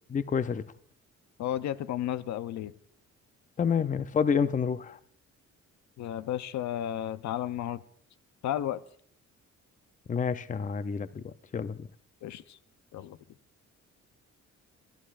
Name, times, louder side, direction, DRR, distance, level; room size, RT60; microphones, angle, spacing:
voice 1, 0.1-0.6 3.6-5.0 10.1-11.9, left 6 dB, 25° left, 0.5 m, -29 dB
voice 2, 1.4-2.7 6.0-7.8 8.4-8.8 12.2-12.6 12.9-13.2, left 11 dB, 65° left, 0.6 m, -33 dB
27.0 x 11.5 x 2.5 m
cardioid pair, 90°, 30 cm